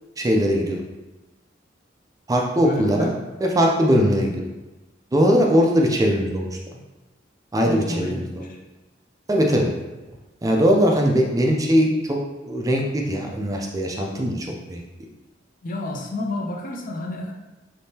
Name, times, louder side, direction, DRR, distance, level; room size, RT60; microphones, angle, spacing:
voice 1, 0.2-0.8 2.3-3.1 3.4-4.3 5.1-6.4 7.5-8.4 9.3-9.7 10.4-14.8, equal, 20° right, 0 dB, 0.4 m, -20 dB
voice 2, 2.6-3.1 3.9-4.2 7.6-8.6 9.5-9.7 15.6-17.3, left 1 dB, 45° left, 1 dB, 0.5 m, -30 dB
3.5 x 3.2 x 2.7 m, 1.1 s
head